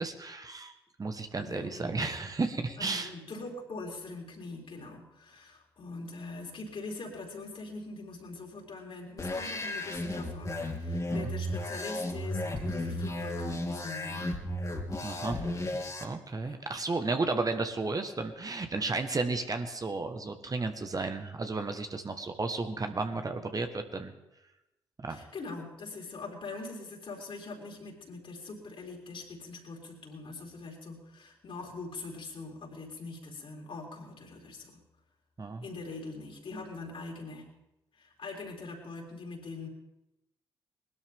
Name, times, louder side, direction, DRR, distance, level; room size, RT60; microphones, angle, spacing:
voice 1, 0.0-3.1 11.1-11.3 15.0-15.4 16.0-24.1 25.0-25.2 35.4-35.6, right 3 dB, 35° right, 7 dB, 1.5 m, -33 dB
voice 2, 1.4-1.9 2.8-14.4 15.2-15.6 16.4-16.6 25.1-34.8 35.6-37.5 37.9-39.7, left 3 dB, 55° left, 0 dB, 4.3 m, -43 dB
sound 1, 9.2-16.0, left 1 dB, 30° left, 2.9 m, -34 dB
20.5 x 12.5 x 3.7 m, 0.92 s
hypercardioid pair, 40°, 11 cm